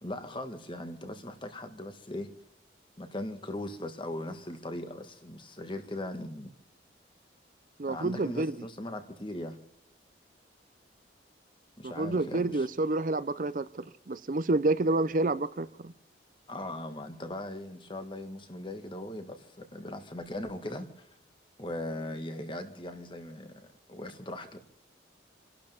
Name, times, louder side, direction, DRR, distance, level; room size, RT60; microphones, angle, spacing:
voice 1, 0.0-2.3 3.0-6.5 7.9-9.6 11.8-12.7 16.5-21.1 21.6-24.6, left 1 dB, 25° left, 1.7 m, -39 dB
voice 2, 7.8-8.6 11.8-15.9, right 2 dB, 45° right, 0.6 m, -29 dB
30.0 x 12.0 x 3.5 m
head